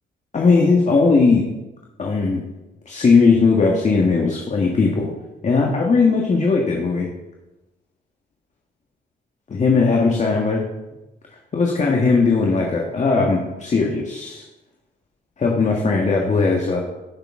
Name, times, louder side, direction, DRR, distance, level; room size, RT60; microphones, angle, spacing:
voice 1, 0.3-1.4 2.0-2.4 2.9-5.1 5.4-7.1 9.5-10.6 11.5-14.4 15.4-16.8, left 4 dB, 35° left, 0 dB, 1.5 m, -18 dB
15.0 x 6.7 x 3.7 m, 1.0 s
cardioid pair, 90°, 20 cm